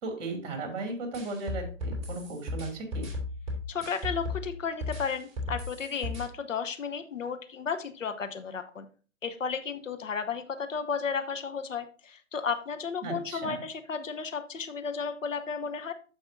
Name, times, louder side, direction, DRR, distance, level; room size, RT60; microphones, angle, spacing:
voice 1, 0.0-3.1 13.0-13.6, right 3 dB, 35° right, 4 dB, 2.6 m, -36 dB
sound 1, 1.1-4.5 4.8-6.2, left 2 dB, 15° right, 2.5 m, -35 dB
voice 2, 3.7-8.9 9.2-15.9, left 6 dB, 75° left, 9 dB, 1.0 m, -33 dB
13.5 x 5.3 x 2.6 m, 0.38 s
figure-of-eight pair, 130°, 39 cm